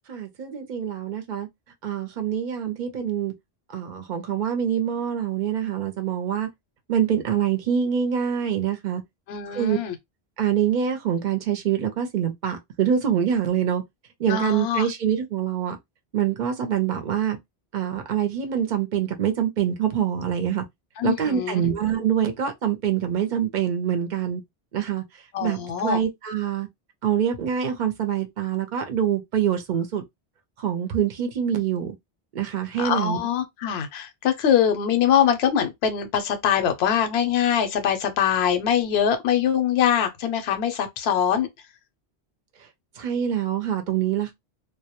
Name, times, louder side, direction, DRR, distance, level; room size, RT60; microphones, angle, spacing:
voice 1, 0.1-1.5 1.8-3.3 3.7-6.5 6.9-9.0 9.5-9.8 10.4-13.8 14.2-15.8 16.1-17.4 17.7-20.6 21.0-24.4 24.7-25.0 25.4-26.7 27.0-30.0 30.6-32.0 32.3-33.2 43.0-44.3, right 9 dB, 55° right, 0.6 m, -25 dB
voice 2, 9.3-10.0 14.3-14.9 21.0-21.6 25.3-26.0 32.8-41.5, left 9 dB, 75° left, 0.8 m, -23 dB
2.1 x 2.1 x 2.8 m
omnidirectional pair, 1.1 m